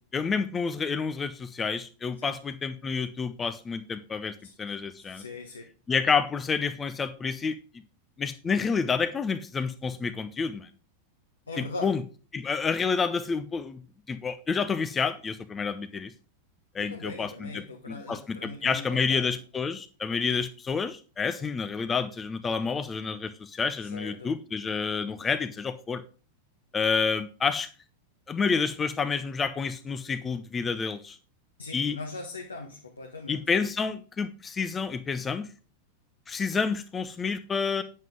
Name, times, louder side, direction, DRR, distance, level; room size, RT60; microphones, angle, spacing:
voice 1, 0.1-5.2 5.9-7.6 8.2-10.7 11.6-12.0 12.3-13.8 14.1-16.1 16.7-26.0 26.7-27.7 28.3-31.2 31.7-32.0 33.3-35.5 36.3-37.8, left 5 dB, 20° left, 0.6 m, -29 dB
voice 2, 5.0-5.6 11.5-11.9 16.8-19.4 23.8-24.3 31.6-33.4, left 3 dB, 75° left, 1.2 m, -40 dB
9.0 x 7.5 x 3.7 m
figure-of-eight pair, 90°, 0 cm